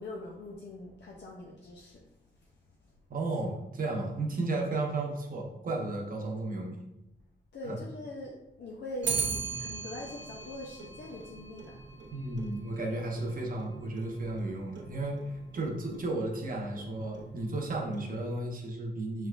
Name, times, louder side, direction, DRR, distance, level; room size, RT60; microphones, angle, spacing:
voice 1, 0.0-2.1 2.4-2.5 7.5-9.3 9.6-11.8, left 1 dB, 80° left, -2 dB, 0.6 m, -42 dB
voice 2, 3.1-6.8 7.6-7.8 12.1-19.3, right 2 dB, 50° right, 0 dB, 0.8 m, -34 dB
Clock, 9.0-18.4, right 5 dB, 90° right, 0.6 m, -40 dB
5.2 x 3.3 x 2.4 m, 0.88 s
wide cardioid pair, 150°, 18 cm